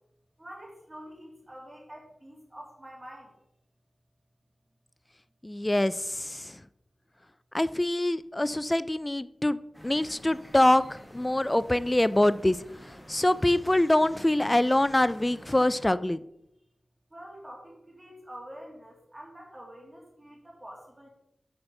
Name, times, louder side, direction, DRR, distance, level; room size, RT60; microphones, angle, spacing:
voice 1, 0.4-3.3 17.1-21.1, equal, 25° right, -2 dB, 2.1 m, -46 dB
voice 2, 5.4-6.6 7.5-10.8 11.1-16.2, left 1 dB, 20° left, 15 dB, 0.3 m, -25 dB
sound 1, 9.7-15.9, equal, 5° left, 1.3 m, -49 dB
6.8 x 4.1 x 5.8 m, 0.80 s
wide cardioid pair, 75°, 0 cm